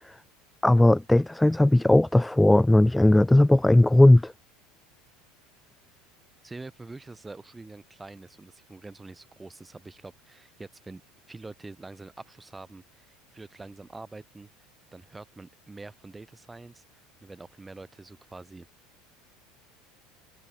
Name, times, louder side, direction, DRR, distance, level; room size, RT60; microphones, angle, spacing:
voice 1, 0.6-4.3, left 1 dB, 5° left, 0.6 m, -18 dB
voice 2, 6.4-11.0 11.3-14.5 14.9-18.7, right 3 dB, 15° right, 6.2 m, -45 dB
figure-of-eight pair, 75°, 0 cm